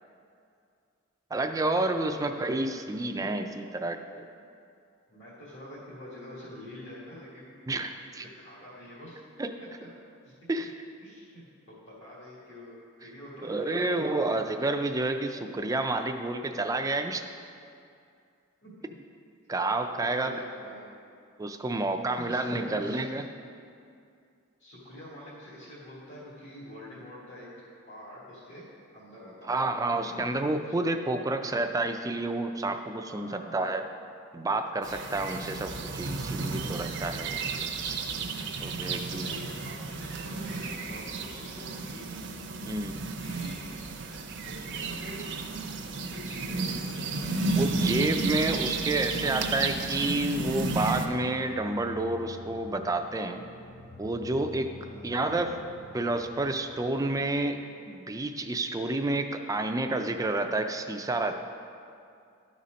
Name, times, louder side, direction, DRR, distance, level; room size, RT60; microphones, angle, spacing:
voice 1, 1.3-4.2 7.7-8.2 9.4-9.5 10.5-10.7 13.4-17.2 19.5-20.3 21.4-23.3 29.5-33.9 34.3-37.4 38.6-39.3 42.7-43.0 47.5-53.4 54.0-54.7 55.0-55.6 55.9-57.6 57.9-61.4, right 2 dB, 15° right, 7 dB, 0.3 m, -29 dB
voice 2, 2.0-2.6 3.0-3.2 5.1-7.5 8.1-9.2 9.6-9.7 10.2-10.7 11.0-14.2 18.6-18.9 20.2-20.9 22.1-23.1 24.6-29.7 30.0-30.3 30.6-30.7 33.1-33.6 39.1-42.5 43.2-45.4 45.9-47.4 54.7-55.1, equal, 65° left, -9 dB, 1.7 m, -47 dB
sound 1, 34.8-51.1, right 3 dB, 60° right, 0.6 m, -32 dB
sound 2, 47.3-58.1, left 2 dB, 20° left, 0.7 m, -50 dB
12.0 x 4.2 x 5.1 m, 2.4 s
head